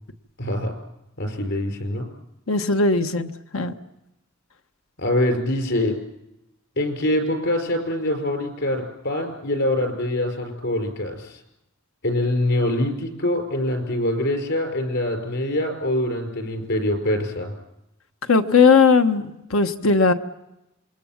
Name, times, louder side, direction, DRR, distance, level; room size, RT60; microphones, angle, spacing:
voice 1, 0.4-0.8 1.2-2.1 5.0-6.0 6.8-11.4 12.0-17.5, left 1 dB, 60° left, 5 dB, 5.2 m, -24 dB
voice 2, 2.5-3.7 18.3-20.1, left 4 dB, 90° left, 8 dB, 1.3 m, -18 dB
27.5 x 21.5 x 7.4 m, 0.91 s
head